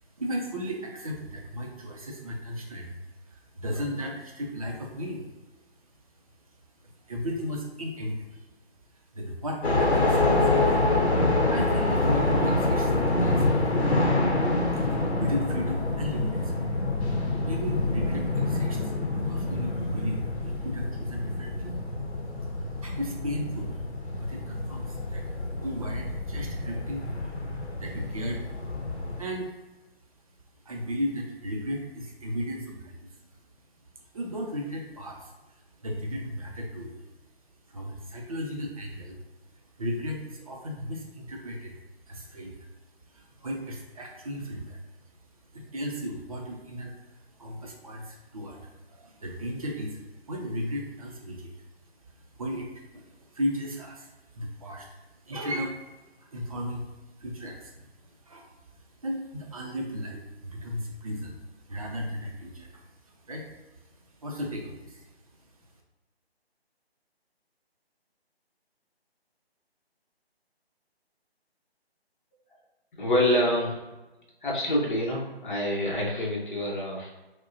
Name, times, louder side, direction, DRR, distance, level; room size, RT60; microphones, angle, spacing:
voice 1, 0.2-3.0 3.2-5.3 6.8-8.5 9.0-10.9 11.3-13.6 14.7-16.6 17.1-21.7 22.7-23.9 24.1-27.2 27.8-28.5 29.2-29.5 30.6-33.4 34.0-35.3 35.8-37.1 37.7-39.2 39.7-41.8 42.0-42.7 43.1-44.8 45.5-51.7 52.1-58.5 58.7-63.5 64.2-65.1, equal, 35° right, 0 dB, 0.5 m, -35 dB
sound 1, 9.6-29.2, left 2 dB, 85° left, 0.8 m, -27 dB
voice 2, 73.0-73.8 74.4-77.1, left 1 dB, 50° left, -2 dB, 1.0 m, -26 dB
4.6 x 2.1 x 2.6 m, 1.1 s
figure-of-eight pair, 150°, 32 cm